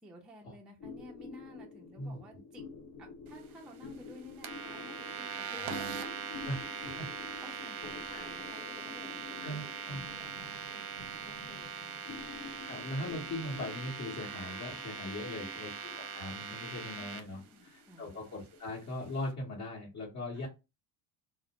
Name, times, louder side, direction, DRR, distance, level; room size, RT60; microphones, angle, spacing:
voice 1, 0.0-2.7 3.0-6.0 6.8-12.1 15.2-15.6 17.0-18.1 20.3-20.5, equal, ahead, -1 dB, 0.3 m, -54 dB
sound 1, 0.8-19.6, left 4 dB, 60° left, 0.8 m, -49 dB
sound 2, 4.4-17.2, right 7 dB, 60° right, 0.6 m, -41 dB
voice 2, 9.4-10.0 12.6-20.5, left 1 dB, 35° left, -6 dB, 1.0 m, -40 dB
2.4 x 2.1 x 2.9 m, 0.27 s
cardioid pair, 120°, 46 cm